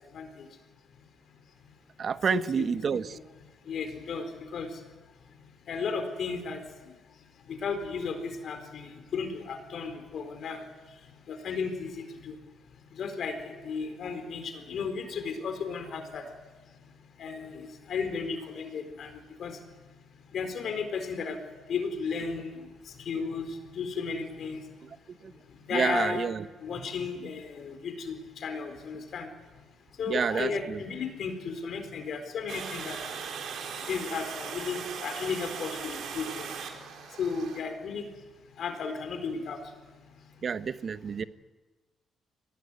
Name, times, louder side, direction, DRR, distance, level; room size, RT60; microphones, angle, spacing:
voice 1, 0.1-0.5 2.3-2.7 2.9-3.2 3.6-4.7 5.7-6.9 7.5-10.6 11.3-12.4 13.0-16.2 17.2-19.6 20.3-21.4 21.7-22.5 22.9-24.6 25.7-26.3 26.6-29.3 30.0-33.0 33.9-36.5 37.2-38.1 38.6-39.6, left 5 dB, 65° left, 7 dB, 4.3 m, -34 dB
voice 2, 2.0-3.2 25.2-25.3 25.7-26.5 30.1-30.8 40.4-41.2, right 6 dB, 50° right, 13 dB, 0.9 m, -29 dB
Water, 32.5-37.6, right 6 dB, 75° right, 4.0 m, -39 dB
24.0 x 18.0 x 9.7 m, 1.2 s
cardioid pair, 90°, 0 cm